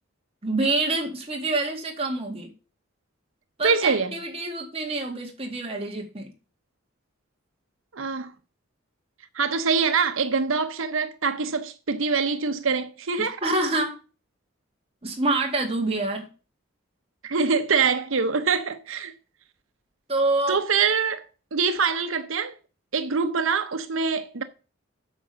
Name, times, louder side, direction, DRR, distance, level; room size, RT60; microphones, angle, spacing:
voice 1, 0.4-2.5 3.6-6.3 13.4-14.0 15.0-16.3 20.1-20.6, right 2 dB, 30° right, 2.2 m, -26 dB
voice 2, 3.6-4.1 7.9-8.3 9.3-13.4 17.2-19.1 20.5-21.2 21.5-22.5 22.9-24.4, right 5 dB, 85° right, 0.9 m, -24 dB
8.7 x 5.2 x 6.8 m
head